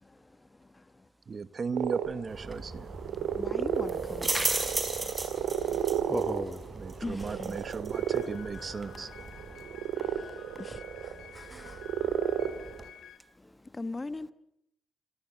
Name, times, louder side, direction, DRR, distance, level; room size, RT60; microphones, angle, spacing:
voice 1, 0.0-1.1 3.0-6.1 7.0-7.7 9.1-10.8 12.4-12.7 13.3-14.3, left 2 dB, 20° left, 1.3 m, -43 dB
voice 2, 1.3-2.9 6.8-9.1, right 5 dB, 40° right, 1.0 m, -36 dB
sound 1, 1.7-12.8, right 9 dB, 85° right, 2.3 m, -33 dB
sound 2, 2.3-12.9, right 2 dB, 20° right, 5.3 m, -38 dB
voice 3, 4.3-6.7 9.8-10.0 11.0-11.9 13.3-13.6, equal, 5° right, 1.3 m, -42 dB
sound 3, 7.9-13.2, left 8 dB, 75° left, 4.9 m, -50 dB
27.5 x 27.0 x 7.0 m
cardioid pair, 90°, 0 cm